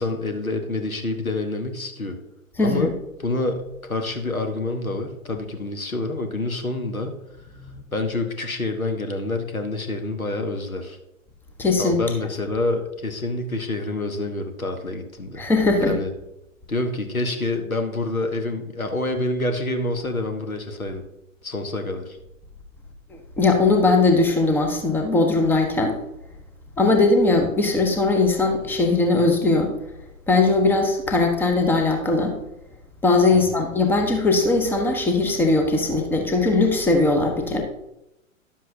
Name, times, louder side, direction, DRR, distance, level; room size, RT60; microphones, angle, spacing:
voice 1, 0.0-2.2 2.6-7.2 7.9-11.0 11.8-15.4 15.8-16.1 16.7-21.0 21.4-22.2 33.3-33.6, left 2 dB, 85° left, 6 dB, 1.3 m, -27 dB
voice 2, 2.6-2.9 7.6-7.7 11.6-12.0 15.4-16.0 23.4-26.0 26.8-29.7 30.3-32.4 33.0-37.6, left 3 dB, 5° left, 3 dB, 0.6 m, -19 dB
10.5 x 7.4 x 2.7 m, 0.88 s
figure-of-eight pair, 110°, 41 cm